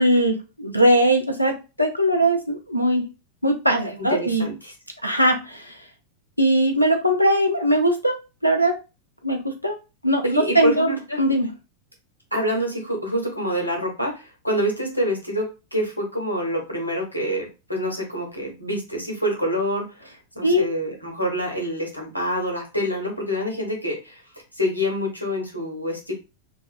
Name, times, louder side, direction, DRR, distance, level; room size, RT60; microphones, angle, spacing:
voice 1, 0.0-3.1 3.4-4.5 5.0-5.8 6.4-8.1 8.4-8.8 9.2-9.8 10.0-11.5 20.4-20.6, equal, 90° left, 4 dB, 0.5 m, -20 dB
voice 2, 4.1-4.7 10.2-11.2 12.3-15.5 15.7-20.1 20.3-24.2 24.5-26.1, equal, 90° right, 0 dB, 0.9 m, -26 dB
2.5 x 2.4 x 2.3 m, 0.29 s
figure-of-eight pair, 90°, 0 cm